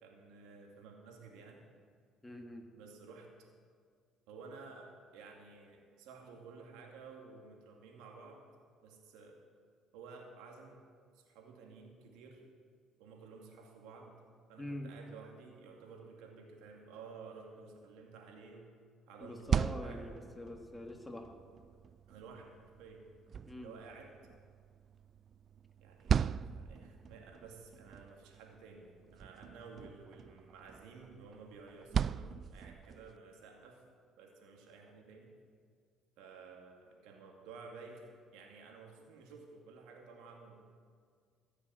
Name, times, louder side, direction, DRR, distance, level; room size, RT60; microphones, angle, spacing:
voice 1, 0.0-1.7 2.7-3.5 4.3-8.4 8.8-9.4 9.9-10.8 11.1-12.4 13.0-14.2 14.5-18.7 19.1-20.3 22.1-23.0 23.6-24.2 25.8-33.8 34.2-35.3 36.2-40.6, right 4 dB, 80° right, 1 dB, 2.4 m, -53 dB
voice 2, 2.2-2.7 14.6-14.9 19.2-21.3 23.5-23.7, left 1 dB, 15° left, 3 dB, 1.9 m, -44 dB
sound 1, 19.2-33.2, right 7 dB, 50° right, 0.3 m, -39 dB
15.5 x 6.9 x 7.8 m, 2.1 s
supercardioid pair, 70°, 0 cm